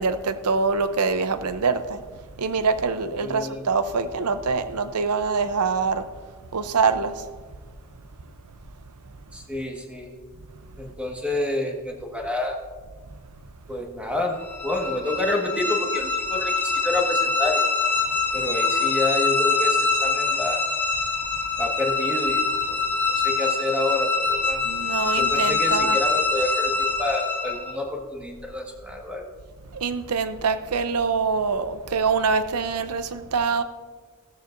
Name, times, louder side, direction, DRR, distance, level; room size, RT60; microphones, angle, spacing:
voice 1, 0.0-2.0 2.4-6.1 6.5-7.3 24.6-26.0 29.7-33.6, right 5 dB, 85° right, 0.7 m, -24 dB
voice 2, 3.2-3.6 9.3-10.1 10.8-12.6 13.7-17.7 18.3-20.7 21.6-22.4 22.7-22.8 23.1-24.6 25.2-29.3, left 2 dB, 5° right, 1.5 m, -28 dB
sound 1, 14.4-27.8, left 3 dB, 10° left, 2.1 m, -24 dB
16.5 x 13.5 x 2.6 m
head